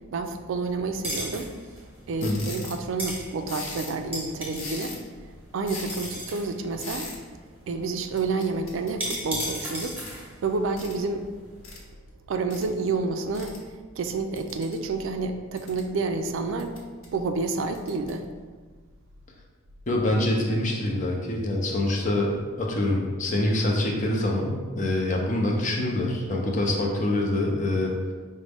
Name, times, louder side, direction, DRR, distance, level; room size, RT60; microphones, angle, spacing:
voice 1, 0.1-1.5 2.1-7.1 7.7-11.3 12.3-16.8 17.1-18.3, right 3 dB, 65° right, 7 dB, 0.3 m, -29 dB
sound 1, 1.0-11.8, equal, 10° right, 1.0 m, -38 dB
sound 2, 2.2-2.8 3.5-4.0 4.5-5.1 5.7-6.1 6.8-7.2 8.2-10.2 10.8-11.0 11.6-11.8 12.5-12.6 13.3-13.6 14.4-14.8 15.3-15.9 16.6-17.1 17.7-18.1, left 3 dB, 80° left, 0.7 m, -39 dB
voice 2, 19.9-27.9, left 1 dB, 35° left, 0 dB, 0.5 m, -25 dB
5.0 x 2.1 x 3.4 m, 1.5 s
head